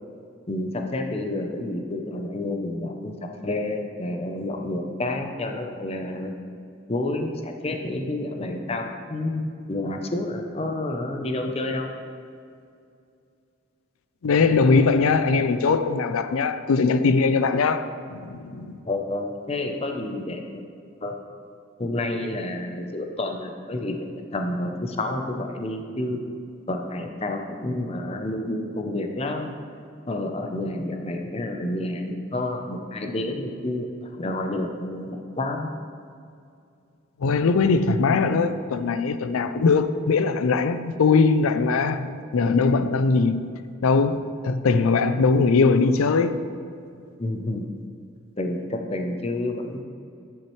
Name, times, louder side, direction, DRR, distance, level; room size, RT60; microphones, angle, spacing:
voice 1, 0.5-3.1 3.4-6.3 6.9-11.9 14.4-14.8 18.8-20.4 21.0-21.2 21.8-24.1 24.3-26.2 26.7-29.6 30.1-35.7 37.6-37.8 47.2-47.7 48.4-49.8, left 1 dB, 30° left, 0.5 m, -29 dB
voice 2, 14.2-18.8 37.2-43.5 43.8-46.4, left 4 dB, 90° left, 0.4 m, -21 dB
9.6 x 7.3 x 3.1 m
head